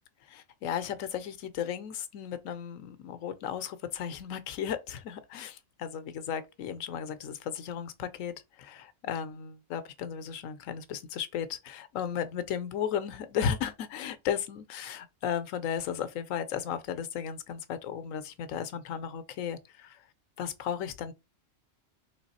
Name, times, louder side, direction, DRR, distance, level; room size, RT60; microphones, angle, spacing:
voice 1, 0.3-20.0 20.4-21.1, left 8 dB, 90° left, 1.1 m, -35 dB
3.8 x 3.1 x 4.1 m
omnidirectional pair, 1.3 m